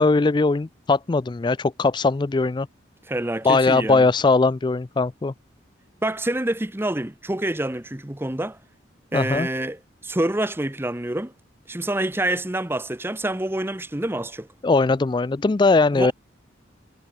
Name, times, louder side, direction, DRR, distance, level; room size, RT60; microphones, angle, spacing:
voice 1, 0.0-2.7 3.4-5.3 9.1-9.5 14.6-16.1, left 3 dB, 25° left, 0.4 m, -20 dB
voice 2, 3.1-4.1 6.0-8.6 9.1-11.3 11.7-14.5 15.9-16.1, right 1 dB, 10° right, 0.9 m, -27 dB
head